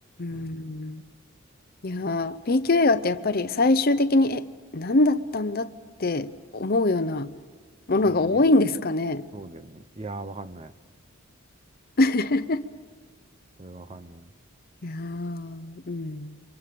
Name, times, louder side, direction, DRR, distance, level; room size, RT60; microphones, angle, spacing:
voice 1, 0.2-1.0 1.8-4.4 4.7-5.7 6.0-7.3 7.9-9.3 12.0-12.6 14.8-16.4, left 2 dB, 45° left, 0.7 m, -24 dB
voice 2, 9.3-10.7 13.6-14.2, right 2 dB, 30° right, 0.7 m, -39 dB
29.0 x 24.0 x 6.9 m
head